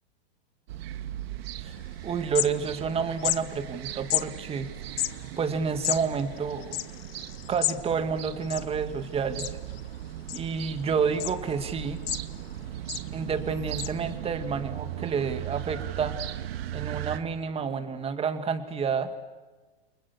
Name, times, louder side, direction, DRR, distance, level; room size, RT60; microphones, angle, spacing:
sound 1, 0.7-17.2, right 12 dB, 65° right, 1.7 m, -38 dB
sound 2, 1.8-1.9 2.1-2.9 3.2-3.4 4.1-4.3 4.9-7.8 8.1-8.2 8.4-9.0 9.4-9.8 10.3-10.8 11.2-11.3 11.8-12.5 12.9-13.1 13.8-13.9, left 15 dB, 65° left, 1.4 m, -31 dB
voice 1, 2.0-4.7 5.4-6.8 7.5-9.5 10.3-12.0 13.1-16.2 16.7-19.2, right 6 dB, 20° right, 9 dB, 1.9 m, -29 dB
29.5 x 27.5 x 6.9 m, 1.3 s
supercardioid pair, 140°, 32 cm